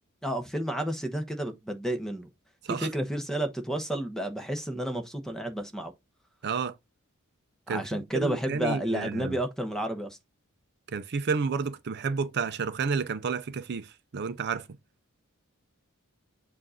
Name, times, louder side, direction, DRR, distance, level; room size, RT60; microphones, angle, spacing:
voice 1, 0.2-2.3 2.7-5.9 7.7-10.2, right 1 dB, ahead, 1.0 m, -31 dB
voice 2, 6.4-6.7 7.7-9.4 10.9-14.6, right 5 dB, 50° right, 0.5 m, -31 dB
7.4 x 2.5 x 5.5 m
head